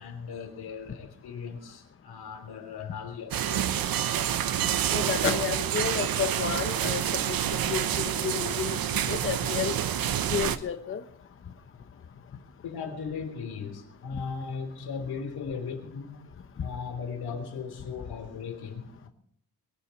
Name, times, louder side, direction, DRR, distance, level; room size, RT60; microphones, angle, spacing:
voice 1, 0.0-3.7 12.6-16.2 16.6-19.1, left 5 dB, 80° left, 3.5 m, -37 dB
sound 1, 3.3-10.6, right 10 dB, 65° right, 1.0 m, -28 dB
voice 2, 4.9-7.0 7.3-7.4 7.7-9.7 10.3-11.0, left 7 dB, 35° left, 0.8 m, -31 dB
22.5 x 7.6 x 7.2 m
wide cardioid pair, 180°, 38 cm